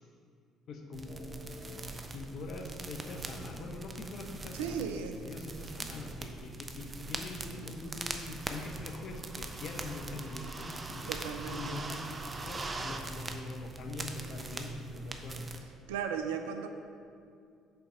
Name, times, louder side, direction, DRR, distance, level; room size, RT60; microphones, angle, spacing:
voice 1, 0.7-11.1 11.5-11.8 12.3-15.5, left 2 dB, 55° left, 3 dB, 0.7 m, -44 dB
sound 1, 0.9-15.6, right 2 dB, 30° right, 0.6 m, -41 dB
voice 2, 4.5-5.2 11.1-11.8 15.9-16.7, right 7 dB, 75° right, 6 dB, 0.4 m, -36 dB
6.7 x 4.0 x 4.9 m, 2.4 s
hypercardioid pair, 55°, 0 cm